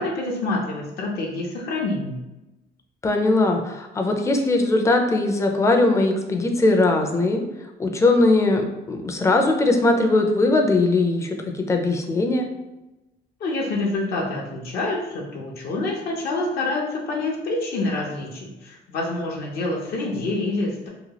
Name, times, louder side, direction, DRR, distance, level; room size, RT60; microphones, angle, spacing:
voice 1, 0.0-2.2 13.4-20.9, left 2 dB, 65° left, -2 dB, 0.6 m, -27 dB
voice 2, 3.0-7.4 7.8-12.5, left 2 dB, 15° left, 3 dB, 0.4 m, -20 dB
2.9 x 2.2 x 2.8 m, 1.0 s
cardioid pair, 110°, 17 cm